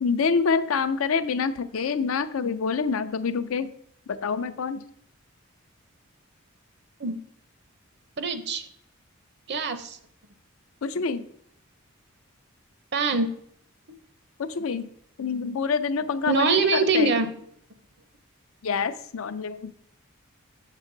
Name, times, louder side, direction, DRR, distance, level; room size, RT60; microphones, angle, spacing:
voice 1, 0.0-3.7 4.1-4.8 10.8-11.3 14.4-14.9 15.2-17.1 18.6-19.7, left 5 dB, 75° left, 12 dB, 0.5 m, -26 dB
voice 2, 8.2-8.7 9.5-10.0 12.9-13.3 16.3-17.3, right 3 dB, 55° right, 10 dB, 0.7 m, -23 dB
7.1 x 6.4 x 3.9 m, 0.66 s
head